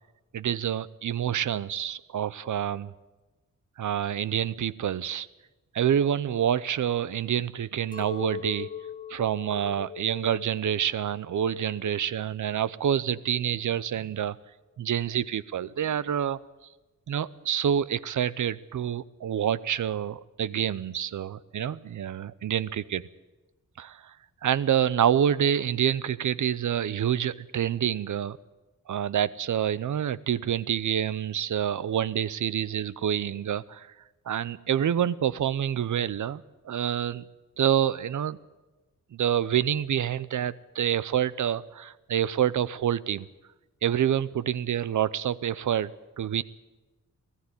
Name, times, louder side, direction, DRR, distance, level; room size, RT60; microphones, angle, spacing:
voice 1, 0.3-2.9 3.8-5.3 5.7-8.7 9.1-14.4 14.8-16.4 17.1-23.0 23.8-24.1 24.4-28.4 28.9-33.9 34.3-37.3 37.6-38.4 39.1-43.3 43.8-46.4, right 9 dB, 70° right, 18 dB, 0.7 m, -27 dB
Chink clink, 7.9-12.3 12.5-13.3, left 7 dB, 25° left, 2.1 m, -41 dB
19.0 x 14.0 x 9.7 m, 1.1 s
wide cardioid pair, 150°, 31 cm